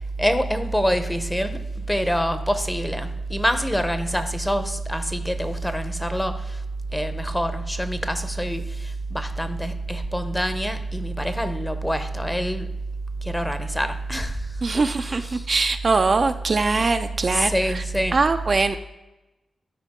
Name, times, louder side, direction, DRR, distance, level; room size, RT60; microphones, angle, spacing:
voice 1, 0.2-1.6 1.9-6.6 6.9-12.7 13.2-14.4 14.7-15.4 17.3-18.2, equal, 10° left, 9 dB, 0.8 m, -25 dB
voice 2, 14.6-17.8 18.1-18.8, right 3 dB, 45° right, 8 dB, 0.4 m, -22 dB
12.0 x 4.6 x 3.6 m, 0.99 s
cardioid pair, 80°, 0 cm